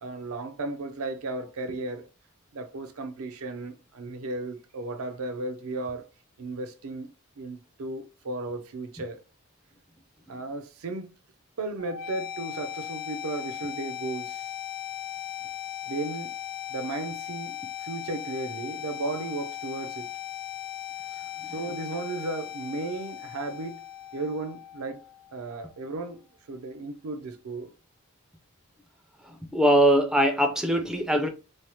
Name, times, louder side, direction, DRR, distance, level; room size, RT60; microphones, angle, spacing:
voice 1, 0.0-2.1 2.5-6.1 6.4-7.1 7.4-9.2 10.3-11.1 11.6-14.5 15.9-16.3 16.7-20.1 21.5-23.8 24.1-25.0 25.3-26.2 26.5-27.7, right 2 dB, 80° right, 0.5 m, -35 dB
sound 1, 11.8-25.8, left 12 dB, 65° left, 0.7 m, -38 dB
voice 2, 29.5-31.3, right 1 dB, 5° right, 0.3 m, -21 dB
3.1 x 2.0 x 2.8 m
head